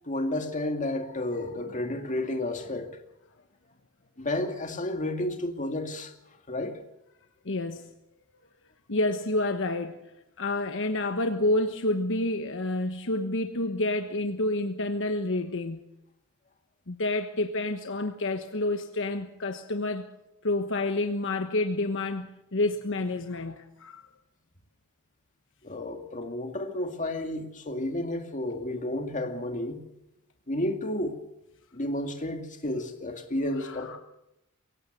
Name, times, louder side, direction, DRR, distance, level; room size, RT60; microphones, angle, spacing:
voice 1, 0.1-2.9 4.2-6.1 6.5-6.8 25.6-29.8 30.5-31.2 31.7-34.0, left 1 dB, 35° left, 2.3 m, -31 dB
voice 2, 7.4-7.8 8.9-10.0 10.4-15.8 16.9-20.1 20.4-24.0 33.6-34.0, left 2 dB, 60° left, 1.2 m, -29 dB
23.0 x 17.5 x 6.8 m
head